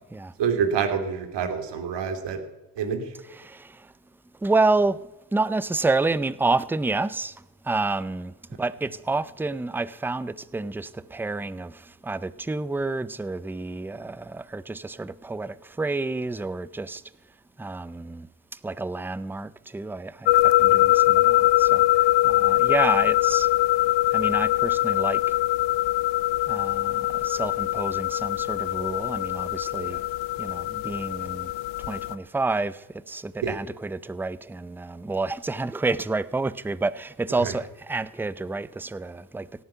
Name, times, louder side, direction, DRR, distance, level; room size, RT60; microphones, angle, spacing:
voice 1, 0.4-2.4 2.8-3.1 29.9-30.0 33.4-33.5 37.4-37.5, right 6 dB, 65° right, 3.0 m, -27 dB
voice 2, 4.4-5.0 5.3-7.3 7.7-17.0 17.6-18.3 18.6-21.8 22.2-23.5 24.1-25.2 26.5-30.0 30.4-31.5 31.9-32.8 33.1-39.5, right 3 dB, 5° right, 0.5 m, -29 dB
sound 1, 20.3-32.1, left 17 dB, 75° left, 0.7 m, -22 dB
17.5 x 9.8 x 5.7 m
cardioid pair, 90°, 45 cm